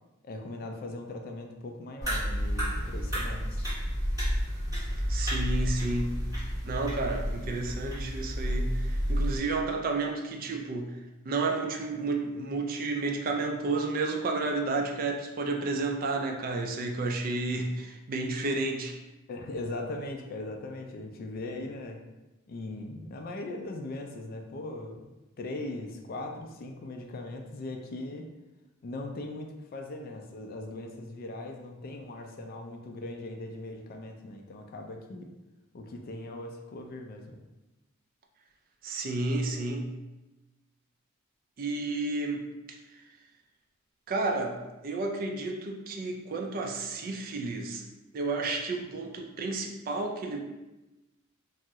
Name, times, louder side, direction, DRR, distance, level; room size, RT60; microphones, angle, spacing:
voice 1, 0.2-3.7 19.3-22.0 22.5-28.3 28.8-35.3 35.7-37.4, left 2 dB, 45° left, 3 dB, 0.3 m, -39 dB
sound 1, 2.0-9.4, equal, 15° right, 1.4 m, -30 dB
voice 2, 5.1-6.2 6.7-10.9 11.3-19.0 38.8-39.9 41.6-42.5 44.1-47.9 48.1-50.4, right 3 dB, 45° right, 2 dB, 0.3 m, -31 dB
2.7 x 2.0 x 3.4 m, 1.0 s
head